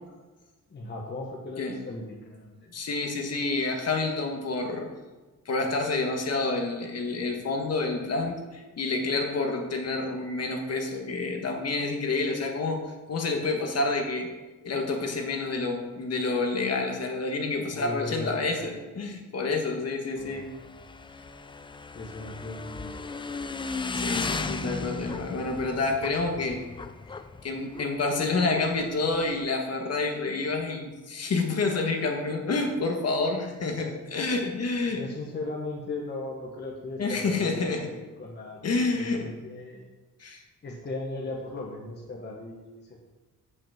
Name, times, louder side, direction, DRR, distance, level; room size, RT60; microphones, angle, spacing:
voice 1, 0.7-2.7 17.6-18.8 20.2-20.5 21.9-23.4 34.9-38.6 39.0-39.9 40.6-43.0, left 2 dB, 30° left, -1 dB, 1.2 m, -37 dB
voice 2, 2.7-4.9 5.4-12.8 13.1-14.3 14.6-20.5 23.9-26.6 27.4-35.0 37.0-37.9 38.6-39.3 40.2-40.4, left 3 dB, 45° left, 2 dB, 1.5 m, -28 dB
Motorcycle / Engine, 20.2-29.4, left 4 dB, 15° left, 0.3 m, -36 dB
8.0 x 6.2 x 7.3 m, 1.2 s
wide cardioid pair, 170°, 34 cm